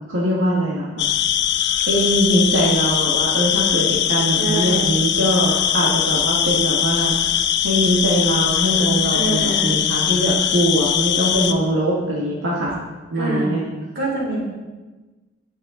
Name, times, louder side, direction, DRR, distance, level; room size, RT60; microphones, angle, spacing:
voice 1, 0.1-1.0 1.9-7.2 7.6-12.7 13.1-13.6, right 1 dB, 85° right, -4 dB, 1.7 m, -21 dB
sound 1, 1.0-11.5, left 10 dB, 60° left, 0.6 m, -21 dB
voice 2, 4.4-4.9 9.1-9.8 13.1-13.5 14.0-14.4, right 2 dB, 55° right, -3 dB, 3.9 m, -25 dB
18.0 x 6.5 x 3.8 m, 1.2 s
head